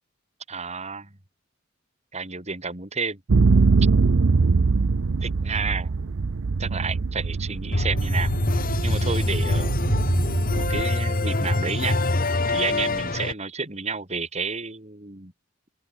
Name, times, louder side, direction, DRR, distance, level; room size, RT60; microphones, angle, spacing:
voice 1, 0.5-1.1 2.1-3.2 5.2-5.9 6.6-8.3 8.8-9.7 10.5-12.0 12.5-15.3, right 4 dB, 35° right, 3.1 m, -31 dB
sound 1, 3.3-10.8, right 4 dB, 85° right, 0.6 m, -23 dB
sound 2, 7.7-13.3, left 2 dB, 45° left, 1.6 m, -24 dB
open air
head